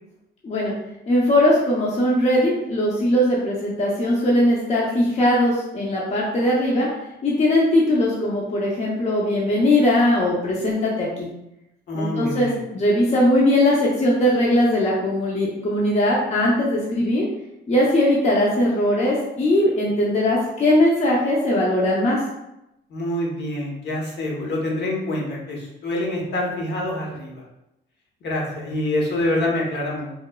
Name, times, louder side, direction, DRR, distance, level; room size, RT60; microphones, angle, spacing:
voice 1, 1.1-6.9 7.2-11.3 11.9-17.2 17.7-22.2, left 1 dB, 35° left, -4 dB, 0.5 m, -20 dB
voice 2, 11.9-12.6 22.9-27.4 28.2-30.1, left 1 dB, 60° left, -2 dB, 0.8 m, -26 dB
3.0 x 2.0 x 2.2 m, 0.87 s
cardioid pair, 90°, 20 cm